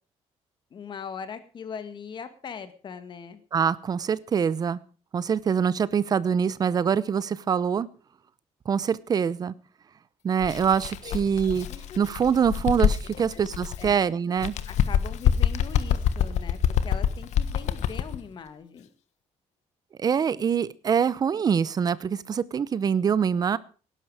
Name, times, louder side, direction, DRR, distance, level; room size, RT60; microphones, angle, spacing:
voice 1, 0.7-3.4 11.0-11.2 11.7-12.0 13.1-13.5 13.8-13.9 14.7-18.9, left 6 dB, 40° left, 11 dB, 2.0 m, -40 dB
voice 2, 3.5-4.8 5.1-7.9 8.7-9.5 10.2-11.7 12.0-14.5 20.0-23.6, right 7 dB, 35° right, 19 dB, 0.8 m, -24 dB
Bird, 10.4-14.0 14.4-18.2, left 9 dB, 80° left, 1.3 m, -26 dB
18.0 x 11.0 x 5.0 m, 0.37 s
cardioid pair, 160°, 12 cm